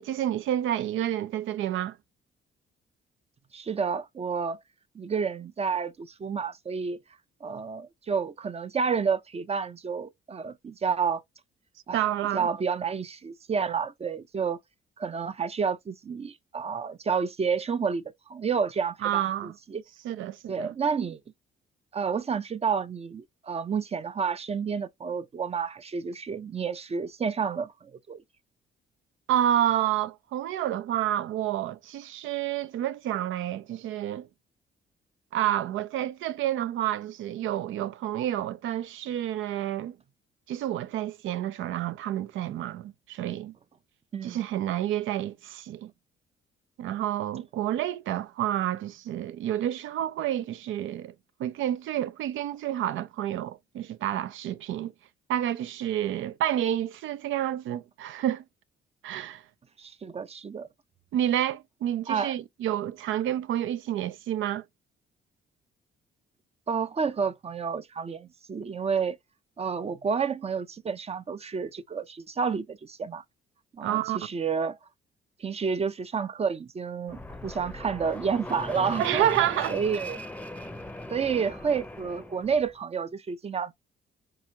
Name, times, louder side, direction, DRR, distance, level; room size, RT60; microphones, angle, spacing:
voice 1, 0.0-2.0 11.9-12.5 19.0-19.5 20.0-20.7 29.3-34.3 35.3-40.0 40.5-43.6 44.2-45.9 46.8-51.1 51.4-54.9 55.3-58.4 59.0-59.4 61.1-64.6 73.8-74.3 79.0-79.8, right 12 dB, 80° right, 0.5 m, -29 dB
voice 2, 3.5-4.6 4.9-7.0 7.4-11.2 11.9-12.0 12.3-14.6 15.0-18.0 18.3-19.8 20.5-21.2 21.9-28.2 44.1-44.4 59.8-60.7 62.1-62.4 66.7-69.2 69.6-73.2 73.7-74.8 75.4-79.3 79.7-80.2 81.1-83.7, right 6 dB, 30° right, 0.5 m, -30 dB
Fixed-wing aircraft airplane, 77.1-82.7, left 1 dB, 5° left, 0.6 m, -39 dB
5.5 x 2.5 x 2.8 m
cardioid pair, 90°, 20 cm